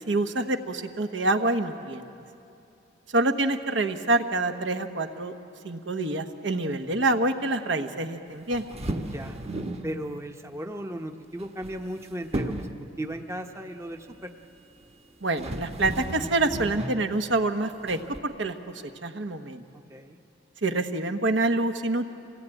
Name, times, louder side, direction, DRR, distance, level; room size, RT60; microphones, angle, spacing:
voice 1, 0.1-2.0 3.1-5.3 5.6-8.6 15.2-18.5 19.0-19.6 20.6-22.1, right 2 dB, 75° right, 6 dB, 1.2 m, -26 dB
sound 1, 8.5-9.9 11.4-12.0 12.3-12.8 14.9-15.0 15.4-17.0 17.9-18.2, right 1 dB, 35° right, 1.1 m, -34 dB
voice 2, 9.8-14.3 19.9-20.2, right 1 dB, 15° right, 5 dB, 0.8 m, -36 dB
26.0 x 18.0 x 9.1 m, 2.7 s
head